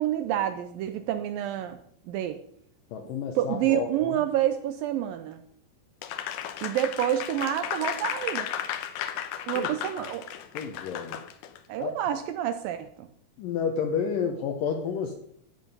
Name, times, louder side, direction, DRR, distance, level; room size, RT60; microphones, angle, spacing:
voice 1, 0.0-1.8 2.1-2.4 3.4-5.4 6.6-8.5 9.5-10.3 11.7-13.1, right 11 dB, 80° right, 10 dB, 2.1 m, -28 dB
voice 2, 2.9-4.2 9.5-9.7 10.5-11.2 11.8-11.9 13.4-15.1, left 6 dB, 70° left, 4 dB, 2.2 m, -30 dB
Applause, 6.0-11.6, left 10 dB, 85° left, 1.7 m, -34 dB
13.0 x 8.9 x 5.4 m, 0.69 s
omnidirectional pair, 4.7 m